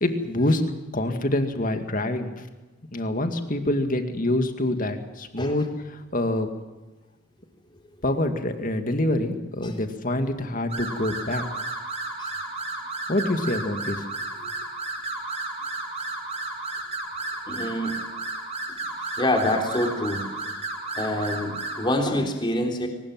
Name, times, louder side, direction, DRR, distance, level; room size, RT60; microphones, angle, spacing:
voice 1, 0.0-2.3 2.9-6.5 8.0-11.4 13.1-14.1 14.4-14.5, left 1 dB, 40° left, 7 dB, 2.2 m, -26 dB
sound 1, 10.7-21.9, right 2 dB, 30° right, 7.0 m, -33 dB
voice 2, 17.5-17.9 19.2-20.2 21.0-22.9, left 1 dB, 20° left, 3 dB, 3.6 m, -26 dB
22.5 x 19.5 x 7.6 m, 1.2 s
head